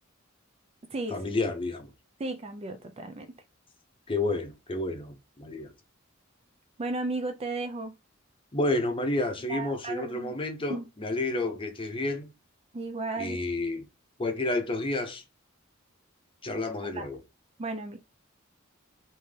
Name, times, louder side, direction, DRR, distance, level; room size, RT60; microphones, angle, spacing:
voice 1, 1.1-1.9 4.1-5.7 8.5-12.3 13.2-13.8 14.2-15.2 16.4-17.2, left 2 dB, 25° left, 0.7 m, -30 dB
voice 2, 2.2-3.4 6.8-7.9 9.5-10.3 10.7-10.9 12.7-13.4 16.9-17.1 17.6-18.0, right 2 dB, 30° right, 0.4 m, -34 dB
3.6 x 2.7 x 3.3 m
head